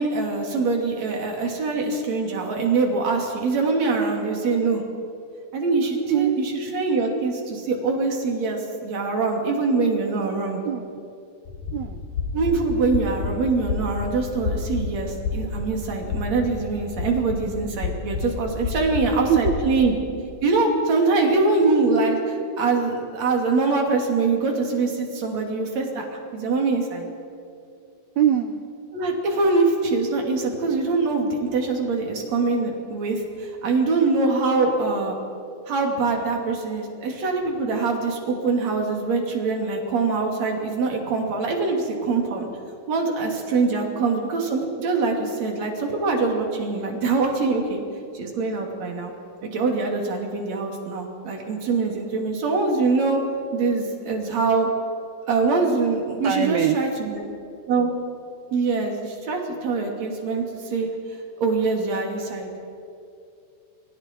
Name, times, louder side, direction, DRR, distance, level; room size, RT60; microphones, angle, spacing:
voice 1, 0.0-4.8 5.5-10.6 12.3-19.9 20.4-26.1 26.3-27.1 28.9-35.2 35.7-42.5 42.9-47.8 48.1-49.1 49.5-53.2 53.5-54.7 55.3-57.2 57.7-57.9 58.5-60.9 61.4-62.5, right 3 dB, 50° right, 1 dB, 3.7 m, -23 dB
voice 2, 6.0-6.4 10.6-11.1 11.7-12.1 19.3-19.5 28.2-28.7 43.8-44.0 56.2-56.8, right 10 dB, 85° right, 8 dB, 1.6 m, -23 dB
sound 1, 11.5-19.6, left 4 dB, 70° left, 4.6 m, -30 dB
29.5 x 22.5 x 4.6 m, 2.6 s
omnidirectional pair, 4.3 m